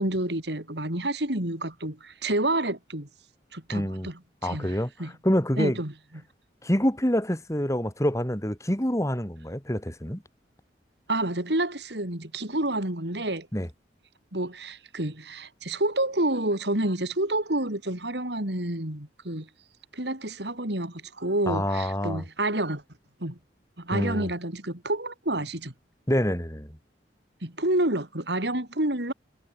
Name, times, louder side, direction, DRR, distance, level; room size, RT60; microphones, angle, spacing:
voice 1, 0.0-3.1 3.5-5.1 5.6-5.9 11.1-13.5 14.3-19.5 19.9-22.8 23.2-23.4 23.8-25.7 27.4-29.1, right 1 dB, 70° right, 4.7 m, -29 dB
voice 2, 3.7-4.1 4.4-5.8 6.6-10.2 13.5-13.7 21.5-22.2 23.9-24.3 26.1-26.8, equal, 15° left, 3.5 m, -26 dB
head